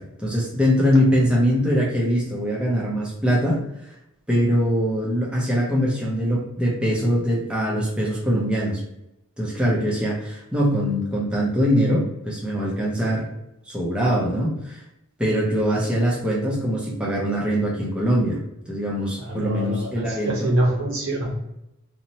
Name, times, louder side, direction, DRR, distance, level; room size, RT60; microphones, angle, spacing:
voice 1, 0.0-3.9 4.3-8.8 9.4-13.3 13.7-14.8 15.2-20.5, equal, 5° right, -5 dB, 0.5 m, -22 dB
voice 2, 19.2-21.3, right 1 dB, 60° right, -2 dB, 0.9 m, -24 dB
2.7 x 2.0 x 2.8 m, 0.86 s
head